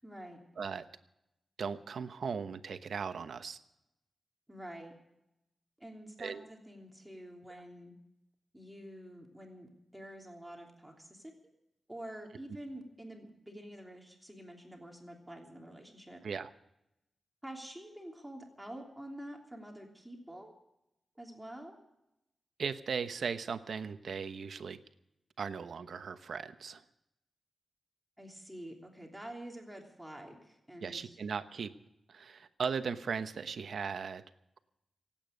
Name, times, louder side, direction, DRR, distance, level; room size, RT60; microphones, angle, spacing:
voice 1, 0.0-0.4 4.5-4.9 5.8-8.0 8.5-11.3 11.9-16.2 17.4-20.5 21.1-21.8 28.2-31.2, right 1 dB, 5° right, 0 dB, 3.1 m, -48 dB
voice 2, 1.6-3.6 6.2-6.4 16.2-16.5 22.6-24.8 25.4-26.8 30.8-31.7 32.1-34.2, right 6 dB, 70° right, 10 dB, 1.0 m, -37 dB
26.5 x 9.0 x 5.2 m, 0.86 s
wide cardioid pair, 95°, 0 cm